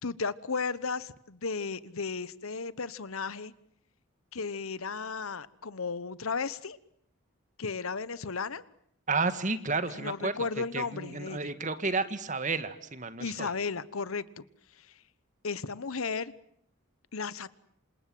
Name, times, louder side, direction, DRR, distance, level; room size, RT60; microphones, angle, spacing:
voice 1, 0.0-3.5 4.3-6.8 7.6-8.6 9.9-11.4 13.2-14.4 14.8-15.0 15.4-16.3 17.1-17.6, left 4 dB, 75° left, 1.1 m, -34 dB
voice 2, 9.1-13.5, right 3 dB, 35° right, 1.8 m, -32 dB
28.0 x 27.0 x 7.9 m
head